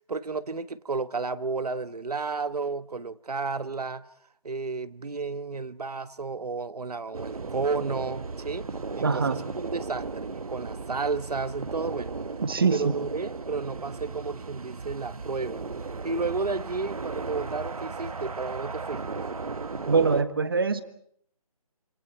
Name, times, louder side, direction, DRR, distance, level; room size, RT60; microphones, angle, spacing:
voice 1, 0.1-4.1 4.4-9.2 9.6-12.2 12.7-15.7 16.0-19.0, right 4 dB, 85° right, 1.4 m, -32 dB
sound 1, 7.1-20.2, right 4 dB, 65° right, 1.4 m, -36 dB
voice 2, 9.0-9.4 12.4-12.9 19.9-20.8, right 4 dB, 35° right, 1.6 m, -23 dB
28.5 x 27.5 x 4.6 m
hypercardioid pair, 175°, 19 cm